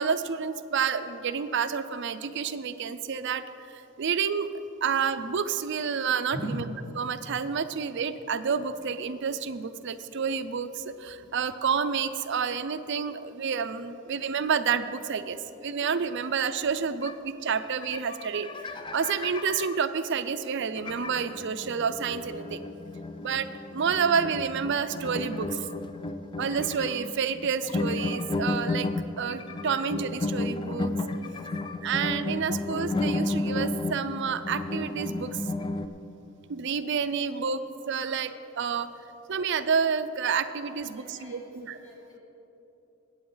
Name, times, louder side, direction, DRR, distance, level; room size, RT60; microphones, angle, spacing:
voice 1, 0.0-4.5 4.8-6.6 7.0-22.6 23.2-25.7 26.4-28.9 29.2-30.9 31.8-35.4 36.5-37.6 37.9-38.9 39.3-41.8, right 6 dB, 60° right, 11 dB, 0.5 m, -29 dB
sound 1, 17.0-17.1 17.5-17.6 17.8-19.8 20.8-35.9, left 2 dB, 25° left, 0.4 m, -33 dB
voice 2, 31.1-31.5 37.1-37.4 37.8-38.2 40.8-42.2, right 1 dB, 65° left, -4 dB, 3.2 m, -41 dB
21.0 x 8.5 x 3.9 m, 3.0 s
head